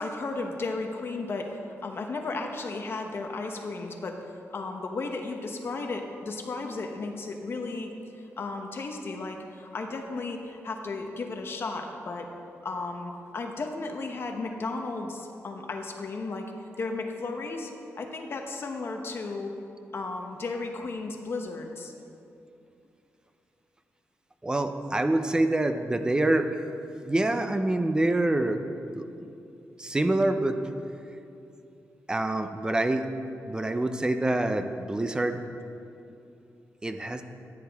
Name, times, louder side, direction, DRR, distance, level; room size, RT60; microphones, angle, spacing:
voice 1, 0.0-4.2 4.5-12.3 12.6-16.5 16.8-19.5 19.9-21.9, left 3 dB, 50° left, 3 dB, 0.9 m, -34 dB
voice 2, 24.4-26.6 27.0-28.6 28.9-29.1 29.8-30.6 32.1-33.1 33.5-35.4 36.8-37.2, right 2 dB, 15° right, 8 dB, 0.6 m, -26 dB
14.5 x 9.6 x 3.5 m, 2.7 s
wide cardioid pair, 140°, 5 cm